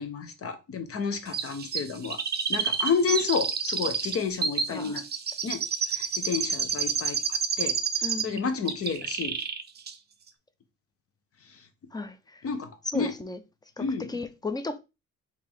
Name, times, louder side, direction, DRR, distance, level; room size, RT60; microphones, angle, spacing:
voice 1, 0.0-2.2 2.5-5.0 5.4-5.6 5.9-9.4 11.5-11.6 12.4-13.2 13.8-14.1, left 5 dB, 50° left, 1.0 m, -31 dB
Chirp tweet, 1.3-8.4 8.7-9.6 9.9-10.0, right 6 dB, 35° right, 0.6 m, -29 dB
voice 2, 4.7-5.0 8.0-8.5 11.9-12.4 12.8-13.4 13.8-14.8, left 3 dB, 15° left, 0.6 m, -35 dB
3.6 x 2.9 x 4.7 m
cardioid pair, 90°, 30 cm